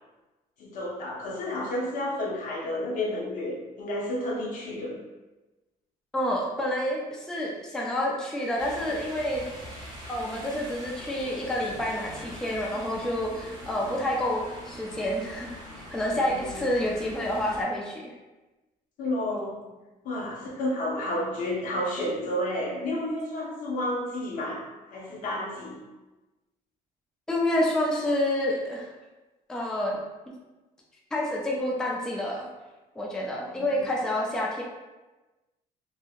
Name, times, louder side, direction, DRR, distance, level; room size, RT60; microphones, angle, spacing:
voice 1, 0.6-5.0 16.1-16.7 19.0-19.6 20.0-25.8 33.5-33.8, left 1 dB, 60° left, -2 dB, 0.8 m, -31 dB
voice 2, 6.1-9.4 10.1-18.1 27.3-28.9 29.5-30.0 31.1-32.5 33.0-34.6, left 1 dB, 5° left, -3 dB, 0.4 m, -28 dB
sound 1, 8.6-17.6, equal, 30° right, 1.0 m, -43 dB
2.7 x 2.7 x 2.4 m, 1.1 s
cardioid pair, 130°, 15 cm